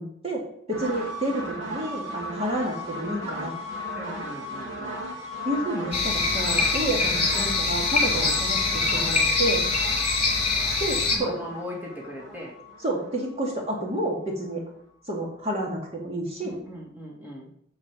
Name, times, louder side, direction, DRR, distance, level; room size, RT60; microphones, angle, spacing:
voice 1, 0.0-3.5 5.4-9.6 10.8-11.3 12.8-14.6 15.1-16.5, right 1 dB, 30° right, -1 dB, 2.1 m, -30 dB
sound 1, 0.7-14.3, left 1 dB, 65° right, 2.3 m, -36 dB
voice 2, 4.0-5.0 11.1-12.5 16.4-17.5, left 1 dB, 10° right, -3 dB, 2.2 m, -38 dB
sound 2, 5.9-11.2, left 3 dB, 30° left, 2.7 m, -24 dB
8.3 x 6.6 x 6.3 m, 0.68 s
head